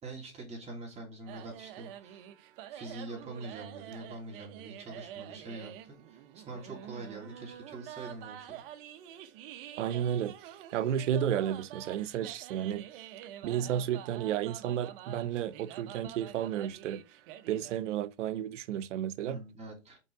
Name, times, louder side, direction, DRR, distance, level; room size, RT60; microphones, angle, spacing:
voice 1, 0.0-2.3 2.7-8.6 19.3-20.0, right 2 dB, 20° right, 2.8 m, -44 dB
sound 1, 1.3-17.8, right 11 dB, 50° right, 1.0 m, -47 dB
voice 2, 9.8-13.0 13.4-17.0 17.5-19.4, right 10 dB, 85° right, 0.8 m, -32 dB
5.6 x 4.6 x 4.7 m
supercardioid pair, 150°, 35 cm